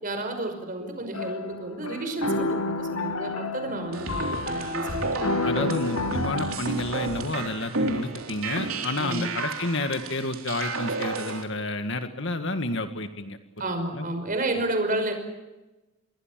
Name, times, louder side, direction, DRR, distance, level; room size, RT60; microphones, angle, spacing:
voice 1, 0.0-5.8 9.0-9.3 13.6-15.1, right 1 dB, 40° right, 6 dB, 5.6 m, -31 dB
sound 1, 1.1-6.6, left 2 dB, 80° left, 2.0 m, -30 dB
sound 2, 3.9-11.4, right 3 dB, 75° right, 3.6 m, -32 dB
voice 2, 5.4-13.4 13.7-14.1, left 2 dB, 60° left, 8 dB, 1.8 m, -30 dB
29.5 x 22.0 x 7.6 m, 1.1 s
head